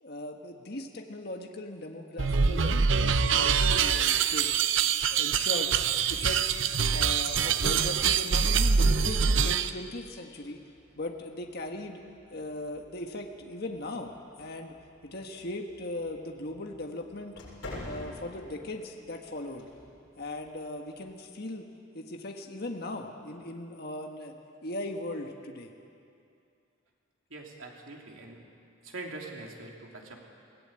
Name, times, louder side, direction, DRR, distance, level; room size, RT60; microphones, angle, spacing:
voice 1, 0.0-4.7 5.1-5.7 6.1-6.6 6.9-10.6 11.0-12.0 12.3-14.8 15.0-17.4 17.8-19.6 20.2-21.7 21.9-24.3 24.6-25.7, left 1 dB, 50° left, 3 dB, 1.5 m, -38 dB
sound 1, 2.2-9.7, right 6 dB, 70° right, 0.7 m, -25 dB
sound 2, 10.3-21.2, left 1 dB, 75° left, 7.3 m, -50 dB
voice 2, 27.3-28.4 28.8-30.3, right 2 dB, 85° right, 0 dB, 3.1 m, -43 dB
22.5 x 17.5 x 8.9 m, 2.5 s
head